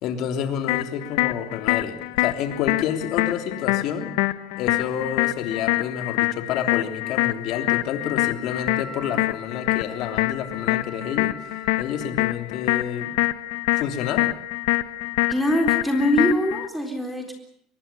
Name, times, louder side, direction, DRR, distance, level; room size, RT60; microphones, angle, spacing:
voice 1, 0.0-4.1 4.6-11.3 11.8-13.2 13.8-14.3, left 8 dB, 50° left, 6 dB, 3.4 m, -29 dB
sound 1, 0.7-16.7, left 19 dB, 85° left, 1.2 m, -25 dB
Wind instrument woodwind instrument, 8.1-12.1, equal, 20° right, 5.7 m, -42 dB
voice 2, 15.3-17.3, equal, ahead, 4 dB, 3.9 m, -23 dB
24.5 x 22.0 x 7.0 m, 0.68 s
cardioid pair, 160°, 0 cm